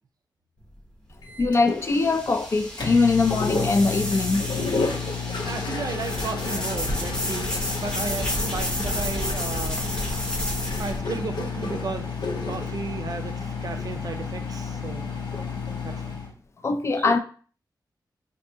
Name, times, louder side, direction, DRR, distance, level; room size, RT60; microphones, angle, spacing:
sound 1, 0.6-11.0, equal, 10° left, 0.8 m, -32 dB
Microwave oven, 1.2-16.3, left 6 dB, 70° left, 0.9 m, -32 dB
voice 1, 1.4-4.7 5.1-5.2 16.6-17.2, left 3 dB, 40° left, 0.3 m, -22 dB
sound 2, 3.3-14.0 15.1-15.7, left 2 dB, 90° left, 0.5 m, -33 dB
voice 2, 5.5-9.9 10.8-12.1 12.5-15.1 15.8-16.2 17.0-17.1, right 4 dB, 55° right, 0.4 m, -34 dB
4.4 x 2.6 x 2.7 m
wide cardioid pair, 135°, 8 cm